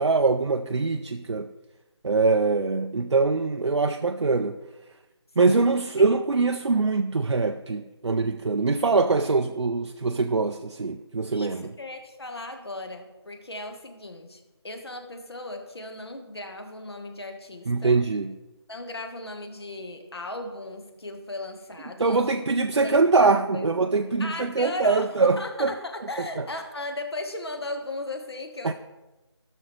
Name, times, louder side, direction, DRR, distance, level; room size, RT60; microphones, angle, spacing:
voice 1, 0.0-1.5 2.0-4.6 5.4-11.7 17.7-18.3 22.0-25.7 28.6-28.7, right 3 dB, 80° right, 6 dB, 0.5 m, -23 dB
voice 2, 11.3-18.0 18.7-22.2 22.8-23.6 24.2-28.7, left 2 dB, 60° left, 5 dB, 1.5 m, -37 dB
16.0 x 6.3 x 3.2 m, 1.1 s
figure-of-eight pair, 170°, 15 cm